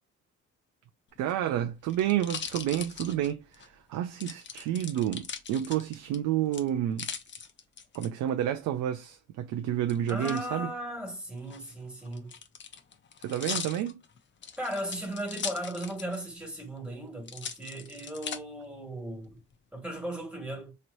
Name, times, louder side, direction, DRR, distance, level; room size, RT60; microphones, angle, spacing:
sound 1, 1.2-3.7 4.2-6.2 6.5-8.1 9.9-10.4 11.4-16.3 16.6-16.7 17.3-18.4 19.0-19.5, left 6 dB, 40° left, 0.6 m, -40 dB
voice 1, 1.2-7.1 7.9-10.7 13.2-14.0, right 11 dB, 85° right, 0.5 m, -30 dB
voice 2, 10.1-12.3 14.6-19.4 19.7-20.7, right 1 dB, 5° right, 1.7 m, -37 dB
3.1 x 2.9 x 2.6 m
cardioid pair, 90°, 30 cm